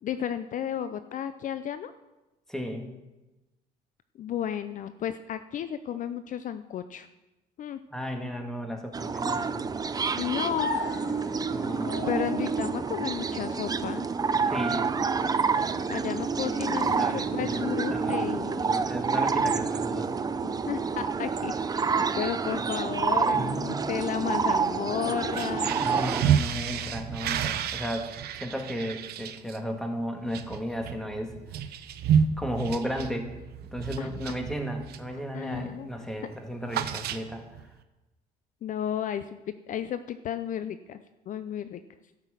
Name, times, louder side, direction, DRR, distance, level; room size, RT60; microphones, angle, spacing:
voice 1, 0.0-1.9 4.2-7.1 7.6-7.8 10.2-10.7 12.1-14.1 15.9-18.7 20.4-25.9 34.0-34.1 35.3-36.3 38.6-41.8, left 9 dB, 50° left, 12 dB, 0.5 m, -33 dB
voice 2, 2.5-2.9 7.9-9.6 11.5-12.0 14.4-14.9 16.8-18.3 18.7-20.1 23.3-23.8 25.8-28.1 28.4-31.4 32.4-33.3 33.7-37.4, equal, 5° left, 3 dB, 1.7 m, -34 dB
sound 1, 8.9-26.2, right 5 dB, 20° right, 0.5 m, -28 dB
sound 2, 10.6-18.5, left 4 dB, 90° left, 1.8 m, -40 dB
sound 3, 25.2-35.2 35.5-35.8 36.1-37.6, right 8 dB, 70° right, 0.8 m, -31 dB
12.0 x 6.1 x 7.4 m, 1.0 s
cardioid pair, 110°, 17 cm